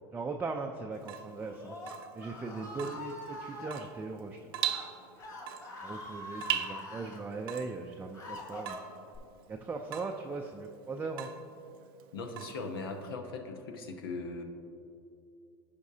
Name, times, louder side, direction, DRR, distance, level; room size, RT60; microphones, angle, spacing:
voice 1, 0.1-1.8 2.1-4.5 5.8-8.8 9.5-11.3, right 3 dB, 15° right, 2 dB, 0.4 m, -39 dB
Water tap faucet / Drip, 0.9-13.1, right 10 dB, 80° right, 0.5 m, -41 dB
Screaming, 1.3-3.7 4.5-4.8 5.2-7.2 7.8-9.2, left 2 dB, 30° left, 1.6 m, -44 dB
voice 2, 12.1-14.4, left 3 dB, 90° left, 5 dB, 0.9 m, -39 dB
14.5 x 5.2 x 2.8 m, 2.6 s
supercardioid pair, 110°, 12 cm